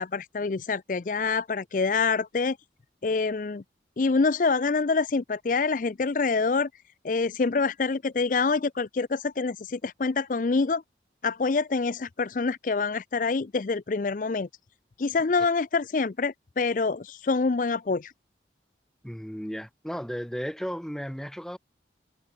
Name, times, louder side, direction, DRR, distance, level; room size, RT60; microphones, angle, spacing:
voice 1, 0.0-2.6 3.0-3.6 4.0-6.7 7.0-10.8 11.2-14.5 15.0-18.1, left 4 dB, 45° left, 0.5 m, -26 dB
voice 2, 19.0-21.6, equal, 5° left, 1.4 m, -34 dB
head